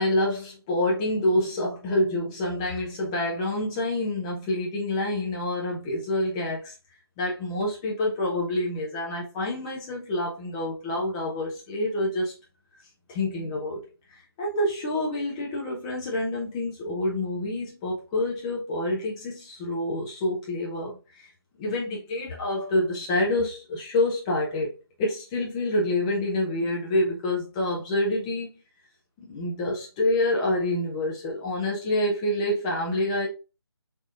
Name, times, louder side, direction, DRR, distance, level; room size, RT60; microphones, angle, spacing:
voice 1, 0.0-6.7 7.2-12.3 13.1-13.8 14.4-21.3 21.6-28.5 29.3-33.3, left 1 dB, 15° left, 0.7 m, -27 dB
3.4 x 2.9 x 2.4 m
figure-of-eight pair, 155°, 14 cm